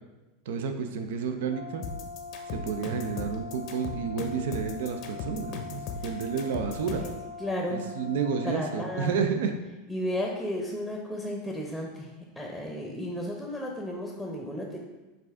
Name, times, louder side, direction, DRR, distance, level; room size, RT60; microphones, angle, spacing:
voice 1, 0.5-1.8 2.5-7.0 7.7-9.5, right 6 dB, 75° right, 6 dB, 0.4 m, -30 dB
Brass instrument, 1.4-9.1, left 4 dB, 90° left, 0.8 m, -42 dB
sound 1, 1.8-7.2, left 5 dB, 50° left, 0.6 m, -38 dB
voice 2, 6.9-7.9 8.4-9.2 9.9-12.1 12.4-14.8, left 1 dB, ahead, 0 dB, 0.7 m, -33 dB
5.6 x 2.5 x 3.4 m, 1.1 s
hypercardioid pair, 100°, 0 cm